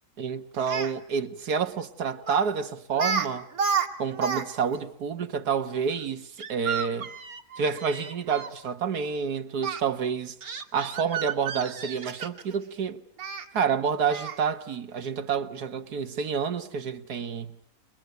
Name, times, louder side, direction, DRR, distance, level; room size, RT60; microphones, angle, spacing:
voice 1, 0.2-3.5 4.0-7.1 7.6-10.4 10.7-13.0 13.5-17.6, right 6 dB, 85° right, 1.9 m, -29 dB
Speech, 0.5-0.9 2.3-2.5 2.9-3.3 3.5-4.4 4.7-4.8 6.4-8.5 9.6-9.8 10.4-12.5 13.2-13.4 14.1-14.4, right 6 dB, 65° right, 2.1 m, -31 dB
30.0 x 23.0 x 7.9 m
omnidirectional pair, 1.6 m